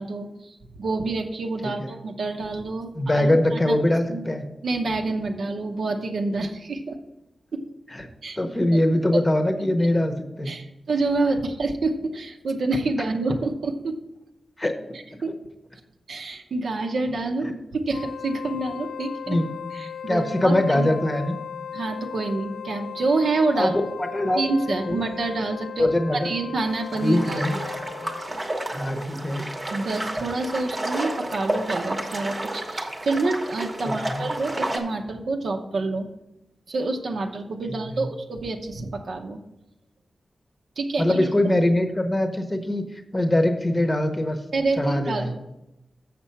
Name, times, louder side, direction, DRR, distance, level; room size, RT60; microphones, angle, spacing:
voice 1, 0.0-3.8 4.1-4.3 4.6-7.0 7.5-7.6 8.2-8.4 10.5-14.0 15.2-15.3 16.1-17.5 17.8-19.4 19.7-21.0 21.7-23.8 24.3-25.9 26.2-27.4 29.7-36.1 36.7-39.4 40.8-41.2 44.5-45.5, right 3 dB, 70° right, 4 dB, 0.8 m, -27 dB
voice 2, 2.9-4.4 7.9-8.0 8.4-10.5 14.6-14.8 19.3-19.5 20.1-21.4 23.5-24.4 24.7-25.0 25.8-26.3 27.0-27.6 28.7-29.4 33.8-34.2 37.7-38.1 41.0-42.8 43.1-44.4 44.8-45.3, left 1 dB, 15° left, 6 dB, 0.9 m, -23 dB
Wind instrument woodwind instrument, 17.8-28.4, left 8 dB, 85° left, 0.5 m, -37 dB
sound 1, 26.7-34.8, right 1 dB, 25° right, 1.0 m, -31 dB
7.4 x 6.0 x 5.7 m, 0.93 s
wide cardioid pair, 155°, 0 cm